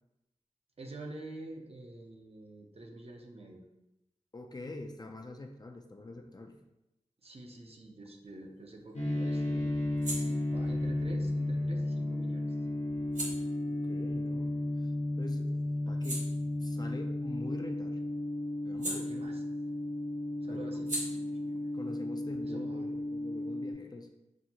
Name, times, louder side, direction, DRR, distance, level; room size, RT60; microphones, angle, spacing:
voice 1, 0.8-3.6 7.2-9.8 10.1-12.5 18.8-19.4 20.4-21.7 22.4-22.9, right 2 dB, 55° right, 1 dB, 0.6 m, -47 dB
voice 2, 4.3-6.6 13.7-14.9 15.2-15.6 15.9-16.2 16.6-18.0 18.6-19.1 20.5-21.0 21.7-24.1, left 2 dB, 35° left, 4 dB, 0.4 m, -45 dB
sound 1, 8.2-15.1 15.5-19.8 20.0-23.4, right 1 dB, 80° right, 1.1 m, -45 dB
sound 2, 8.9-23.7, left 1 dB, 65° left, 0.9 m, -34 dB
6.1 x 2.0 x 2.8 m, 0.91 s
wide cardioid pair, 55°, 12 cm